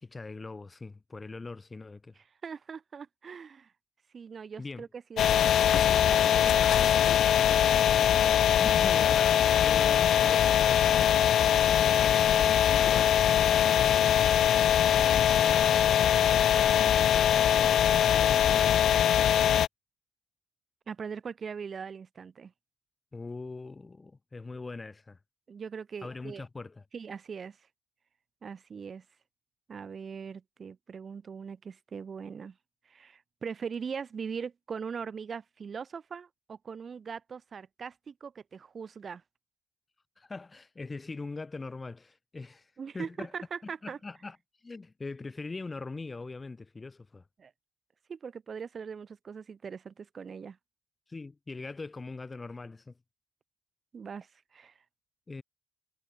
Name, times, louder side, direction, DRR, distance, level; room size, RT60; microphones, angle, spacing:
voice 1, 0.0-2.2 4.6-4.9 8.6-11.2 11.8-13.1 13.7-14.3 14.9-16.8 17.3-19.6 23.1-25.2 26.0-26.8 40.2-43.3 43.6-44.4 44.6-47.3 51.1-52.9 55.3-55.4, left 3 dB, 25° left, 3.8 m, -42 dB
voice 2, 2.4-3.7 4.1-7.2 20.9-22.5 25.5-26.4 26.9-27.6 28.4-29.0 29.7-32.6 32.8-39.2 42.8-44.0 47.4-47.5 48.1-50.6 53.9-54.7, right 6 dB, 45° right, 6.2 m, -41 dB
sound 1, 5.2-19.7, left 10 dB, 70° left, 0.4 m, -22 dB
cardioid pair, 90°, 0 cm